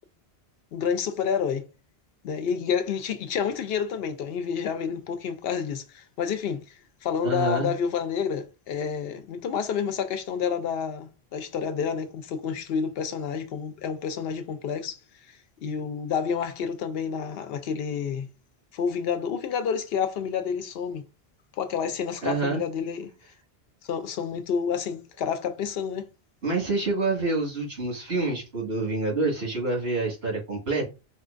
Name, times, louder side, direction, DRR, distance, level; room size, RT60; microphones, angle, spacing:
voice 1, 0.7-1.7 2.2-15.0 15.3-18.3 18.7-21.0 21.6-23.1 23.8-26.1, left 7 dB, 70° left, 0.8 m, -29 dB
voice 2, 7.2-7.7 22.2-22.6 26.4-30.9, right 3 dB, 80° right, 2.0 m, -27 dB
4.3 x 2.3 x 2.4 m
omnidirectional pair, 1.1 m